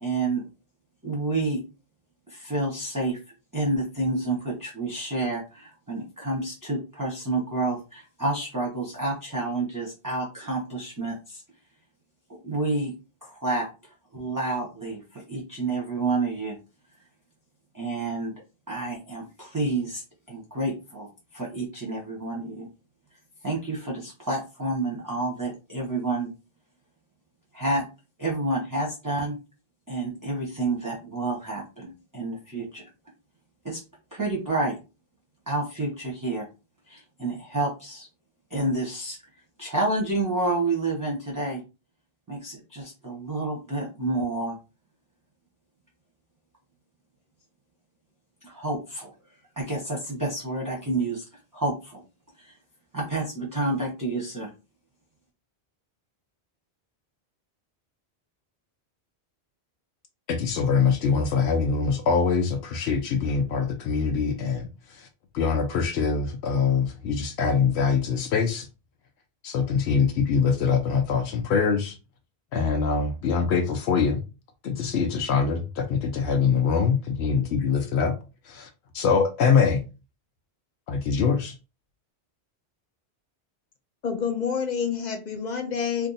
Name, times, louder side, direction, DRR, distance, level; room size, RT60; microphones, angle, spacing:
voice 1, 0.0-0.5 1.0-1.6 2.3-3.2 3.5-11.4 12.3-12.9 13.2-13.7 14.1-16.6 17.7-18.4 18.7-21.1 21.3-22.7 23.4-26.3 27.5-27.8 28.2-29.4 29.9-32.8 33.6-33.8 34.1-34.8 35.5-36.4 36.9-38.1 38.5-39.2 39.6-41.6 42.3-44.5 48.4-49.1 49.6-51.2 51.5-52.0 52.4-52.5 52.9-54.5, right 2 dB, 20° right, 0.7 m, -29 dB
voice 2, 60.3-65.1 65.3-68.7 69.4-72.0 72.5-74.2 74.6-78.2 78.4-78.7 78.9-79.8 80.9-81.5, left 5 dB, 85° left, 0.9 m, -24 dB
voice 3, 84.0-86.1, left 6 dB, 50° left, 0.6 m, -28 dB
2.6 x 2.6 x 3.9 m
omnidirectional pair, 1.1 m